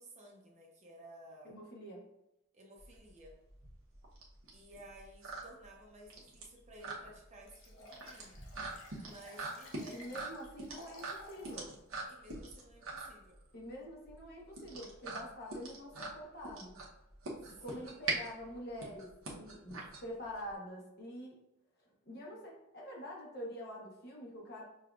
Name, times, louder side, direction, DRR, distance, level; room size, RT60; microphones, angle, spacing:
voice 1, 0.0-1.5 2.5-3.4 4.5-8.4 9.0-10.0 12.1-13.4 17.4-17.9, right 1 dB, 35° right, -1 dB, 0.6 m, -55 dB
voice 2, 1.4-2.1 9.9-11.7 13.5-16.8 17.5-21.4 22.1-24.6, equal, 50° left, -2 dB, 0.9 m, -46 dB
sound 1, 2.8-20.5, right 3 dB, 85° right, 0.9 m, -43 dB
Liquid, 7.5-11.6 12.1-12.2, left 1 dB, 80° left, 0.9 m, -55 dB
5.8 x 2.3 x 2.4 m, 0.87 s
head